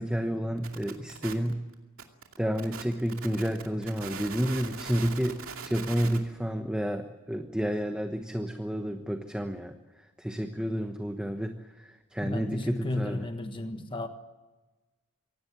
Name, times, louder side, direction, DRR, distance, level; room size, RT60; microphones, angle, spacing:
voice 1, 0.0-1.6 2.4-9.7 10.2-13.3, equal, 5° right, 6 dB, 1.1 m, -30 dB
sound 1, 0.6-6.2, right 5 dB, 65° right, 2.5 m, -41 dB
voice 2, 12.2-14.1, left 1 dB, 20° left, 7 dB, 1.4 m, -33 dB
24.5 x 17.5 x 9.6 m, 1.2 s
head